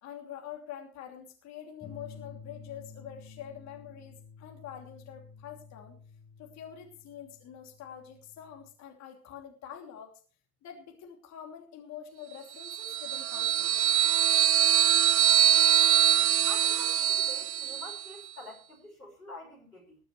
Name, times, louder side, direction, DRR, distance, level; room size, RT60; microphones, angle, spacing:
voice 1, 0.0-6.0 6.4-10.1 10.6-13.8, left 9 dB, 35° left, 2 dB, 3.0 m, -46 dB
sound 1, 1.8-8.7, left 5 dB, 15° left, 1.9 m, -51 dB
sound 2, 12.6-18.1, right 10 dB, 50° right, 0.8 m, -24 dB
voice 2, 16.5-20.0, left 1 dB, 85° left, 0 dB, 5.8 m, -46 dB
19.5 x 11.5 x 3.3 m, 0.38 s
figure-of-eight pair, 80°, 45 cm